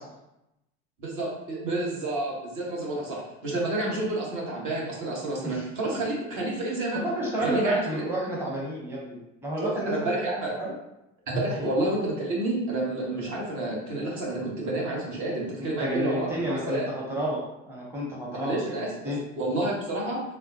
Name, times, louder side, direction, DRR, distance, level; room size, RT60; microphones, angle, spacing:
voice 1, 1.0-7.0 7.4-7.9 9.6-10.6 11.3-16.9 18.3-18.9 19.4-20.2, right 2 dB, 50° right, -4 dB, 1.5 m, -29 dB
voice 2, 5.4-6.0 6.9-10.1 10.6-10.7 11.5-11.7 15.6-19.2, right 1 dB, 5° right, -4 dB, 0.9 m, -31 dB
3.7 x 2.1 x 2.8 m, 0.90 s
hypercardioid pair, 70°, 38 cm